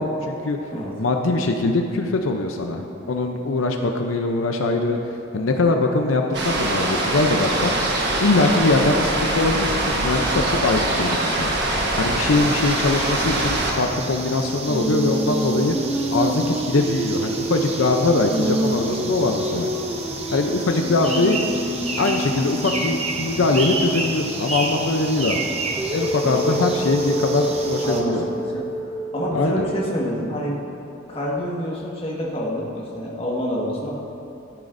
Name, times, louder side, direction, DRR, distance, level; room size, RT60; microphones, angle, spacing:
voice 1, 0.0-0.6 1.0-7.7 8.2-11.5 12.0-15.8 16.1-19.7 20.3-21.4 22.0-25.5 25.9-28.2 29.3-29.6, left 2 dB, 85° left, 4 dB, 0.6 m, -22 dB
sound 1, 6.3-13.7, right 2 dB, 55° right, 1.3 m, -23 dB
sound 2, 12.3-28.0, right 3 dB, 30° right, 0.8 m, -31 dB
Female singing, 14.7-23.6 25.8-30.0, right 1 dB, 15° right, 0.5 m, -27 dB
voice 2, 27.8-28.6 29.1-30.6 31.1-33.9, equal, 30° left, -4 dB, 1.5 m, -27 dB
14.0 x 9.1 x 2.6 m, 2.8 s
head